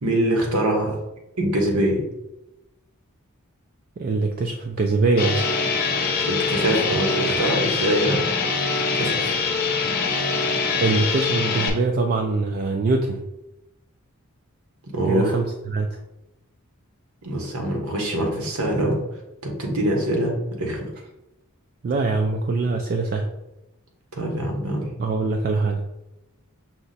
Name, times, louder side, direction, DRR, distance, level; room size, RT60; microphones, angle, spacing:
voice 1, 0.0-0.9 1.4-2.0 6.2-8.2 8.5-9.3 14.9-15.4 17.2-19.0 19.4-20.8 24.1-24.9, right 1 dB, 90° right, 1 dB, 1.2 m, -24 dB
voice 2, 4.0-5.4 10.7-13.2 15.1-16.0 21.8-23.3 25.0-25.8, right 3 dB, 40° right, 3 dB, 0.3 m, -23 dB
sound 1, 5.2-11.7, left 4 dB, 45° left, 0.7 m, -24 dB
5.8 x 2.1 x 4.0 m, 0.95 s
head